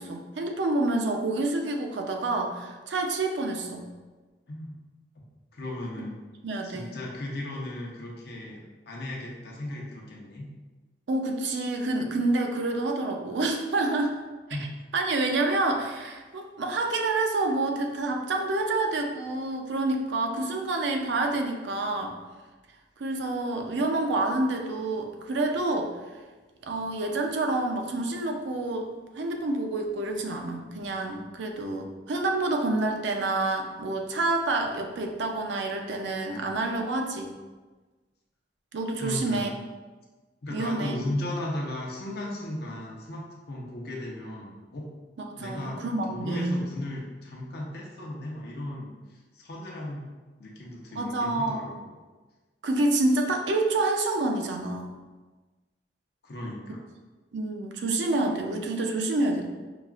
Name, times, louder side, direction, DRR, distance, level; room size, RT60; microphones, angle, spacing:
voice 1, 0.0-3.9 6.4-6.9 11.1-14.2 14.5-14.6 14.9-22.2 23.0-25.9 26.6-28.9 29.2-37.3 38.7-39.5 40.5-41.0 45.4-46.6 51.0-51.7 52.6-54.9 57.3-59.5, right 2 dB, 75° right, 3 dB, 0.5 m, -28 dB
voice 2, 5.5-6.2 6.6-8.6 8.9-10.5 14.5-14.7 39.0-39.5 40.4-44.9 45.4-50.1 50.4-51.9 56.2-56.8, left 1 dB, 60° left, -2 dB, 0.8 m, -36 dB
5.8 x 2.4 x 2.4 m, 1.3 s
head